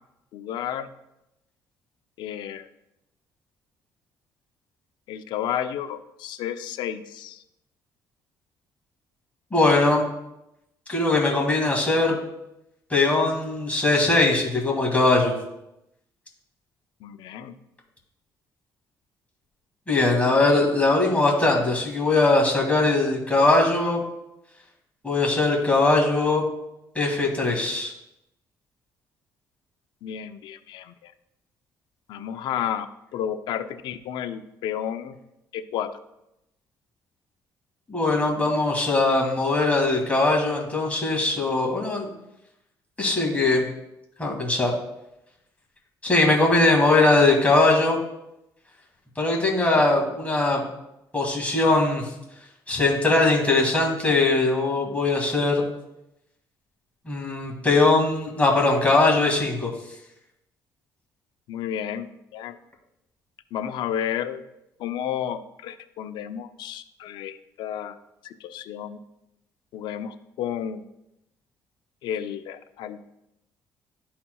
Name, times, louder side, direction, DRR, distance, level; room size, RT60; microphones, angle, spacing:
voice 1, 0.3-0.9 2.2-2.7 5.1-7.4 17.0-17.5 30.0-31.1 32.1-35.2 35.5-36.0 61.5-62.6 63.5-64.4 64.8-68.0 68.2-69.0 69.7-70.8 72.0-73.0, left 9 dB, 80° left, 11 dB, 0.4 m, -32 dB
voice 2, 9.5-10.0 10.9-12.2 12.9-15.3 19.9-24.0 25.0-26.4 27.0-27.9 37.9-42.1 43.0-43.6 44.2-44.7 46.0-48.0 49.2-50.6 51.1-52.1 52.7-55.7 57.1-59.7, left 2 dB, 15° left, -1 dB, 2.1 m, -21 dB
11.5 x 4.3 x 2.3 m, 0.88 s
cardioid pair, 80°, 8 cm